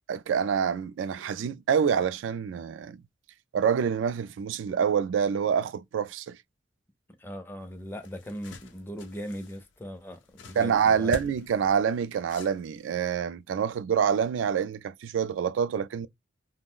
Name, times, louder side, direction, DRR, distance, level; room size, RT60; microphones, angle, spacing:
voice 1, 0.1-3.0 3.5-6.4 10.6-16.1, right 7 dB, 85° right, 0.3 m, -26 dB
voice 2, 7.2-11.1, equal, 10° left, 0.4 m, -39 dB
sound 1, 7.6-13.1, left 4 dB, 75° left, 0.5 m, -46 dB
2.4 x 2.0 x 3.6 m
head